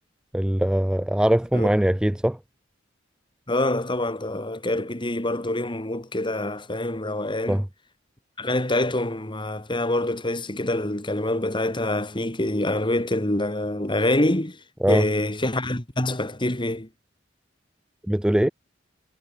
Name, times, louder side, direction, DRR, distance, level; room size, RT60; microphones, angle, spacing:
voice 1, 0.3-2.4 7.5-7.7 14.8-15.0 18.1-18.5, right 1 dB, 5° right, 0.3 m, -21 dB
voice 2, 3.5-7.6 8.4-14.6 14.9-16.9, left 1 dB, 25° left, 2.8 m, -25 dB
head